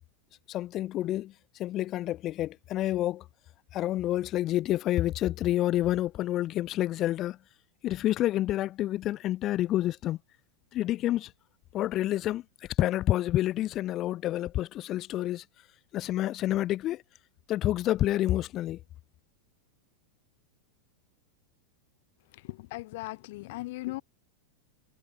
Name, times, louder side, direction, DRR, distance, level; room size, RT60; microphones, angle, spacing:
voice 1, 0.5-1.3 1.6-3.2 3.7-7.4 7.8-10.2 10.7-11.3 11.7-12.4 12.8-15.4 15.9-17.0 17.5-18.8, left 14 dB, 35° left, 0.6 m, -28 dB
voice 2, 22.7-24.0, left 20 dB, 50° left, 1.1 m, -37 dB
figure-of-eight pair, 90°, 0 cm